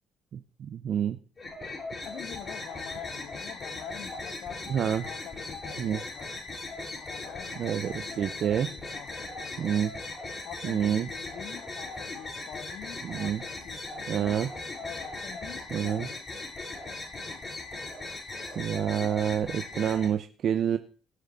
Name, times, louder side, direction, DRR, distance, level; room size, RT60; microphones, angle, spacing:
voice 1, 0.3-1.2 4.7-5.0 5.8-6.0 7.6-8.7 9.6-9.9 10.6-11.1 13.0-13.4 14.1-14.5 15.7-16.1 18.6-20.8, right 9 dB, 60° right, 8 dB, 0.8 m, -28 dB
sound 1, 1.4-20.1, left 2 dB, 30° left, 7.6 m, -39 dB
voice 2, 2.0-6.3 7.0-8.2 8.7-9.9 10.4-14.4 14.8-16.2, left 9 dB, 70° left, 10 dB, 0.9 m, -45 dB
18.0 x 6.5 x 4.2 m, 0.38 s
supercardioid pair, 65°, 0 cm